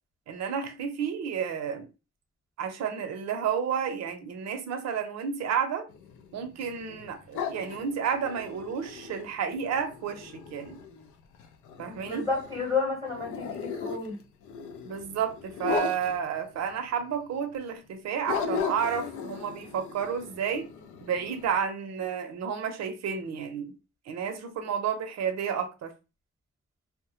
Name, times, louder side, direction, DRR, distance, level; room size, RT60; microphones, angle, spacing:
voice 1, 0.3-1.9 2.6-5.9 6.3-10.8 11.8-12.3 14.8-20.7 21.0-23.8 24.1-25.9, right 7 dB, 60° right, 0.6 m, -31 dB
sound 1, 5.9-12.8 13.1-16.8 17.0-17.1 17.5-17.6 18.3-21.6, left 5 dB, 80° left, 0.5 m, -37 dB
voice 2, 12.0-14.2, left 4 dB, 10° left, 1.0 m, -31 dB
2.1 x 2.0 x 2.8 m
cardioid pair, 90°, 30 cm